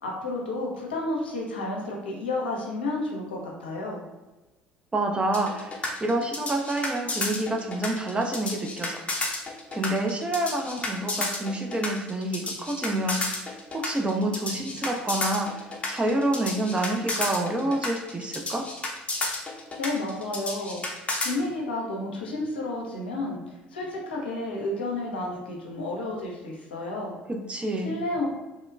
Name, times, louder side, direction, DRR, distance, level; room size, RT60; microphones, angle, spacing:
voice 1, 0.0-4.0 19.8-20.8 21.2-23.4 23.7-27.1 27.8-28.3, left 2 dB, 80° left, -2 dB, 0.5 m, -31 dB
voice 2, 4.9-9.0 9.7-18.7 27.3-28.0, right 1 dB, 20° right, 2 dB, 0.4 m, -28 dB
sound 1, 5.3-21.3, left 2 dB, 25° left, 0.6 m, -31 dB
2.9 x 2.1 x 2.3 m, 1.1 s
figure-of-eight pair, 60°, 5 cm